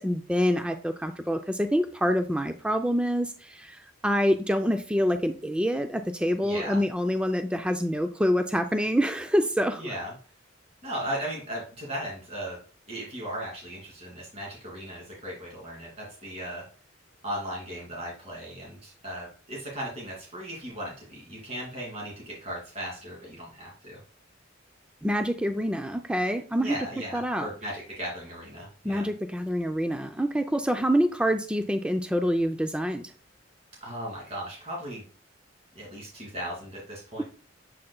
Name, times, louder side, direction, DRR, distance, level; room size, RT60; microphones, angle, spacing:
voice 1, 0.0-9.9 25.0-26.8 27.1-27.5 28.8-33.1, equal, 5° right, 7 dB, 0.4 m, -26 dB
voice 2, 6.4-6.8 9.8-10.1 10.8-12.6 12.9-16.6 17.2-24.0 26.6-29.0 33.8-35.0 35.7-37.2, equal, 35° right, -3 dB, 2.8 m, -37 dB
7.7 x 5.7 x 2.3 m, 0.39 s
head